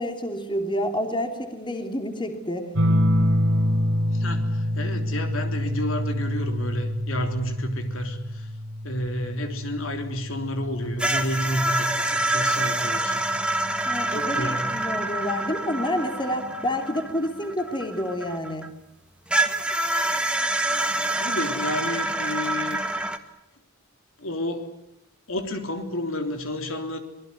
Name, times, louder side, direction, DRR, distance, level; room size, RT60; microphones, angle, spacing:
voice 1, 0.0-2.7 13.8-18.7, left 1 dB, 25° left, 5 dB, 2.9 m, -29 dB
sound 1, 2.8-11.8 13.3-13.8, equal, 90° right, 3.2 m, -26 dB
voice 2, 4.1-8.5 8.8-13.3 14.1-14.7 21.2-22.8 24.2-24.7 25.3-27.0, left 1 dB, 70° left, 6 dB, 3.5 m, -30 dB
sound 2, 11.0-18.7 19.3-23.2, right 2 dB, 5° right, 1.6 m, -26 dB
25.5 x 20.5 x 9.6 m, 0.83 s
head